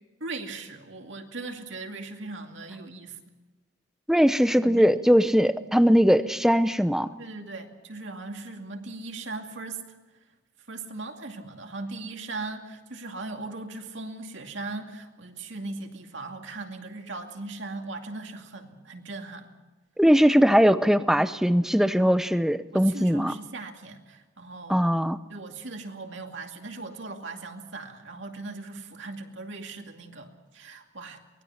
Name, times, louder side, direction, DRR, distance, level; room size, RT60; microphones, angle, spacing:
voice 1, 0.2-3.2 4.6-4.9 7.2-9.8 10.7-19.5 22.7-24.8 25.3-31.2, right 3 dB, 60° right, 3 dB, 2.4 m, -38 dB
voice 2, 4.1-7.1 20.0-23.3 24.7-25.2, equal, ahead, 12 dB, 0.6 m, -20 dB
24.0 x 20.0 x 5.8 m, 1.2 s
head